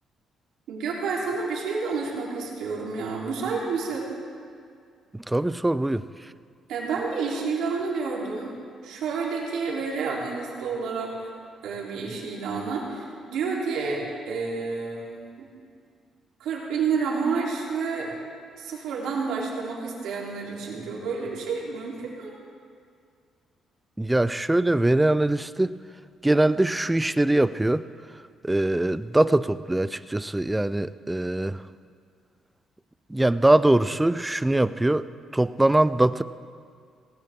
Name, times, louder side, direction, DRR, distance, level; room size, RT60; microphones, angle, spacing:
voice 1, 0.7-4.1 6.7-8.5 8.8-11.3 11.6-15.2 16.4-18.1 18.6-22.3, right 4 dB, 85° right, -3 dB, 3.6 m, -29 dB
voice 2, 5.1-6.0 24.0-25.8 26.2-27.9 28.4-31.6 33.1-35.1 35.3-36.2, right 1 dB, 10° right, 15 dB, 0.5 m, -22 dB
18.5 x 18.0 x 3.8 m, 2.2 s
cardioid pair, 90°, 0 cm